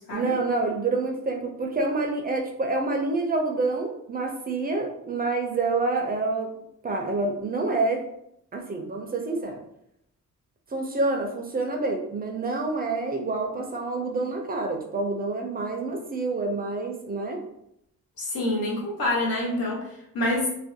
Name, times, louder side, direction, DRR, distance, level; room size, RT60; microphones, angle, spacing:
voice 1, 0.1-6.5 6.8-8.0 8.5-9.6 10.7-17.4, right 3 dB, 30° right, 2 dB, 0.4 m, -27 dB
voice 2, 18.2-20.5, left 1 dB, 85° left, -3 dB, 0.9 m, -27 dB
2.5 x 2.1 x 2.6 m, 0.77 s
cardioid pair, 110°, 34 cm